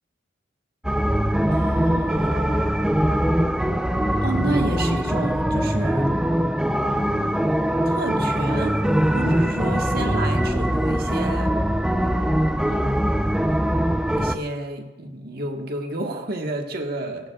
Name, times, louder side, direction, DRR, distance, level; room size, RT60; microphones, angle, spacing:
sound 1, 0.8-14.4, equal, 5° right, 0.4 m, -22 dB
voice 1, 1.5-2.8 4.2-6.3 6.8-7.5 7.8-8.8 9.1-11.5 12.6-13.1 14.2-17.3, right 2 dB, 55° right, 3 dB, 1.4 m, -31 dB
17.0 x 16.0 x 2.4 m, 1.2 s
head